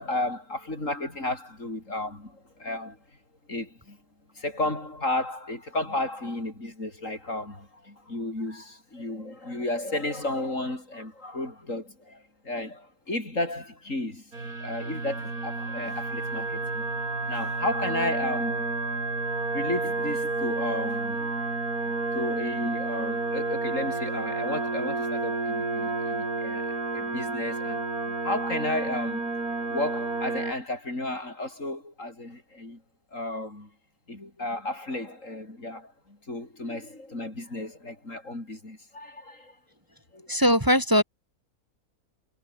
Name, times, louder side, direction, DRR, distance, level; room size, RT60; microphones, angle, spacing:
voice 1, 0.0-3.0 3.5-4.0 4.3-14.3 14.6-16.9 17.3-18.7 19.5-21.3 21.9-29.3 29.7-32.8 33.1-33.7 34.1-39.6 40.1-40.3, left 2 dB, 55° left, 6.3 m, -33 dB
sound 1, 14.3-30.5, right 3 dB, 75° right, 4.8 m, -30 dB
voice 2, 40.3-41.0, equal, 15° right, 4.0 m, -20 dB
omnidirectional pair, 1.6 m